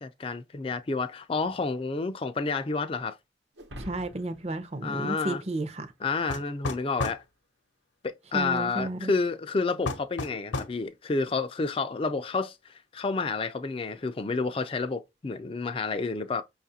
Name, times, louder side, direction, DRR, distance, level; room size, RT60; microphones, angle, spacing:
voice 1, 0.0-3.1 4.8-5.4 6.0-7.2 8.0-12.6 12.9-16.4, left 4 dB, 30° left, 0.3 m, -30 dB
sound 1, 3.5-6.1, equal, 80° right, 1.0 m, -46 dB
voice 2, 3.8-5.9 8.3-9.1, right 2 dB, 35° right, 0.6 m, -32 dB
sound 2, 6.3-7.2 9.8-10.8, left 3 dB, 90° left, 0.7 m, -32 dB
5.6 x 2.4 x 2.7 m
head